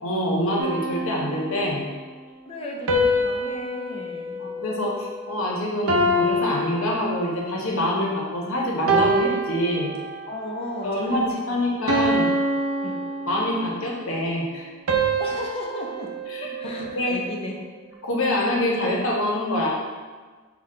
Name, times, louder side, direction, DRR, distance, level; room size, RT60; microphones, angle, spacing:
voice 1, 0.0-1.9 4.4-9.9 10.8-12.3 13.3-14.7 16.3-17.2 18.0-19.7, left 1 dB, 70° left, -2 dB, 0.9 m, -25 dB
sound 1, 0.6-1.9 2.9-5.4 5.9-7.6 8.2-8.4 8.9-10.4 10.9-11.2 11.9-13.8 14.9-17.3, right 1 dB, 80° right, 0.6 m, -26 dB
voice 2, 2.5-4.5 10.3-11.4 12.8-13.1 15.2-17.6, left 1 dB, 30° left, -1 dB, 0.6 m, -35 dB
5.9 x 2.2 x 3.7 m, 1.4 s
head